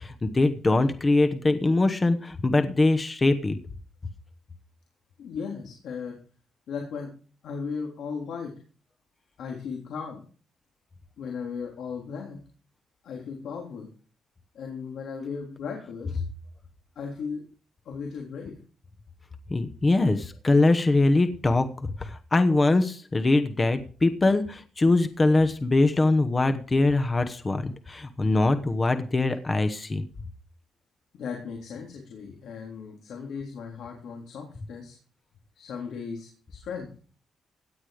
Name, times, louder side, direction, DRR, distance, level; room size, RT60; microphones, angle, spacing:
voice 1, 0.0-3.6 19.5-21.7 22.0-30.0, left 2 dB, 20° left, 9 dB, 1.0 m, -22 dB
voice 2, 5.2-6.1 6.7-7.1 7.4-8.5 9.4-10.2 11.2-12.4 13.0-13.9 14.5-16.2 17.0-17.4 17.9-18.5 31.1-35.0 35.6-36.9, left 5 dB, 85° left, 1 dB, 3.6 m, -36 dB
17.0 x 10.0 x 5.0 m, 0.41 s
wide cardioid pair, 170°, 0 cm